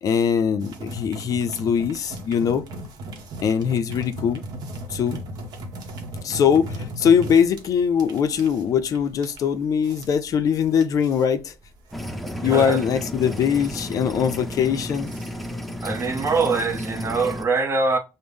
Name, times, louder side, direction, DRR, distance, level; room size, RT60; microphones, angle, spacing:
voice 1, 0.0-2.7 3.4-4.4 4.9-5.2 6.2-11.5 12.4-15.1, left 7 dB, 55° left, 0.4 m, -21 dB
sound 1, 0.6-16.9, right 1 dB, 70° right, 0.8 m, -38 dB
sound 2, 11.9-17.4, equal, ahead, 0.5 m, -33 dB
voice 2, 12.4-12.8 15.8-18.0, right 4 dB, 35° right, 0.7 m, -23 dB
5.2 x 2.0 x 3.4 m
cardioid pair, 95°, 7 cm